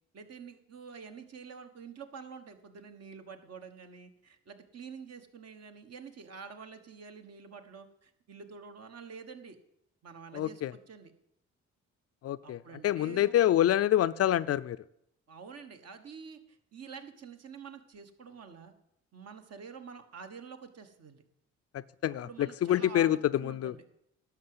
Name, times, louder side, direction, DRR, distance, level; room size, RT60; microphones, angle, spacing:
voice 1, 0.1-9.6 10.0-11.1 12.4-13.3 15.3-18.7 19.1-21.2 22.2-23.8, right 6 dB, 55° right, 7 dB, 1.4 m, -48 dB
voice 2, 10.3-10.7 12.2-14.8 22.0-22.3 22.6-23.7, left 12 dB, 55° left, 16 dB, 0.4 m, -26 dB
11.5 x 6.1 x 7.8 m, 0.78 s
cardioid pair, 90°, 30 cm